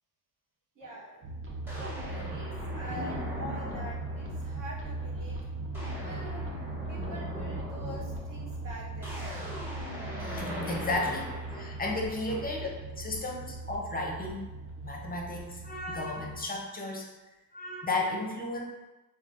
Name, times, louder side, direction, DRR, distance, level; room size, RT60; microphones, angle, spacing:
voice 1, 0.7-1.4 1.7-5.4 5.8-9.2, equal, 50° right, -3 dB, 1.0 m, -45 dB
sound 1, 0.8-0.9 1.7-4.5 5.0-5.3 5.5-12.7, equal, 5° right, 1.1 m, -40 dB
sound 2, 1.2-16.4, right 2 dB, 30° right, 0.8 m, -39 dB
voice 2, 10.2-14.5 14.8-17.1 17.5-18.6, left 2 dB, 20° left, 0 dB, 0.7 m, -34 dB
3.1 x 2.3 x 2.6 m, 1.1 s
hypercardioid pair, 50°, 43 cm